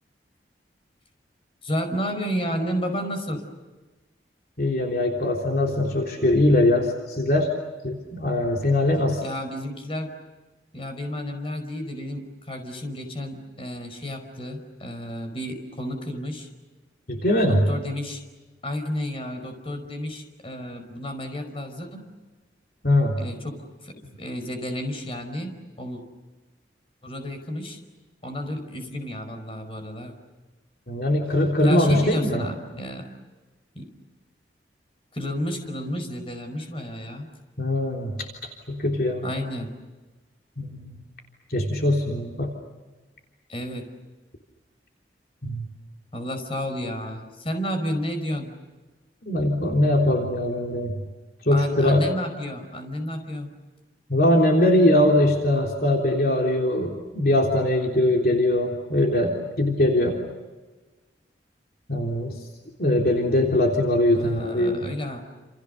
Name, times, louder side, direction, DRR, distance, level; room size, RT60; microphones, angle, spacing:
voice 1, 1.6-3.4 9.2-10.1 10.7-16.5 17.5-18.2 18.6-22.0 23.2-23.6 23.8-26.0 27.0-27.8 28.2-30.1 31.6-33.1 33.7-33.9 35.1-37.3 39.2-39.8 43.5-43.9 46.1-48.6 51.5-53.5 64.2-65.2, equal, 30° left, 6 dB, 5.1 m, -31 dB
voice 2, 4.6-7.5 7.8-9.2 17.1-17.6 22.8-23.2 30.9-32.4 37.6-38.3 38.7-39.3 40.6-41.0 41.5-42.5 45.4-45.7 49.3-51.0 51.4-52.0 54.1-60.2 61.9-62.4 62.8-64.8, left 1 dB, 55° left, 0 dB, 3.6 m, -21 dB
30.0 x 29.0 x 6.7 m, 1.2 s
head